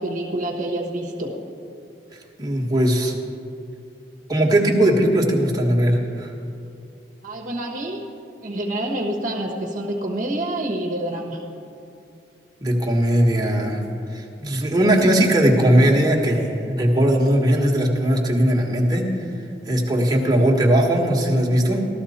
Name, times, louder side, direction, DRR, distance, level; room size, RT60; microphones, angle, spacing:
voice 1, 0.0-1.4 7.2-8.0 8.4-11.4, right 1 dB, 50° right, 0 dB, 1.2 m, -27 dB
voice 2, 2.4-3.1 4.3-6.3 12.6-13.8 14.1-19.1 19.7-21.9, right 1 dB, 20° right, -2 dB, 1.4 m, -19 dB
14.5 x 13.0 x 4.3 m, 2.6 s
head